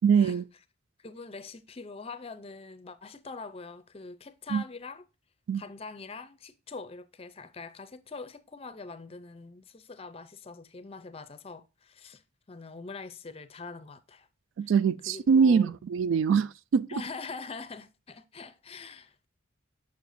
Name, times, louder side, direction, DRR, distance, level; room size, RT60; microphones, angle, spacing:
voice 1, 0.0-0.4 4.5-4.6 5.5-5.6 14.6-16.9, right 6 dB, 70° right, 0.3 m, -23 dB
voice 2, 1.0-5.0 5.5-12.2 12.5-14.3 14.6-14.7 15.1-15.7 16.9-19.3, left 4 dB, 30° left, 0.5 m, -43 dB
6.7 x 6.5 x 2.6 m
head